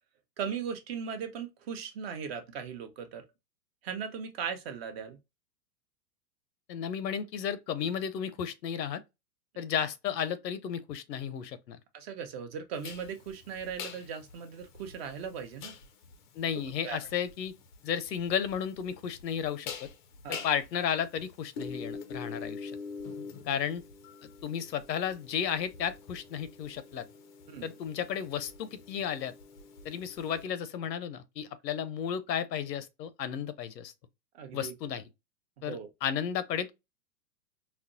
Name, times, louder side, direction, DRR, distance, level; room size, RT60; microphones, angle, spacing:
voice 1, 0.4-3.2 3.8-5.2 11.9-15.8 16.8-17.0 20.2-20.4 27.5-27.7 34.3-34.7 35.7-35.9, right 7 dB, 40° right, 0.7 m, -38 dB
voice 2, 6.7-9.0 9.6-11.8 16.3-17.5 17.8-19.9 20.3-22.7 23.5-23.8 24.4-27.0 27.6-29.3 29.8-33.9 34.5-35.0 35.6-36.7, left 8 dB, 80° left, 0.7 m, -33 dB
sound 1, 12.8-30.5, left 5 dB, 30° left, 0.4 m, -45 dB
4.1 x 2.0 x 2.5 m
hypercardioid pair, 130°, 49 cm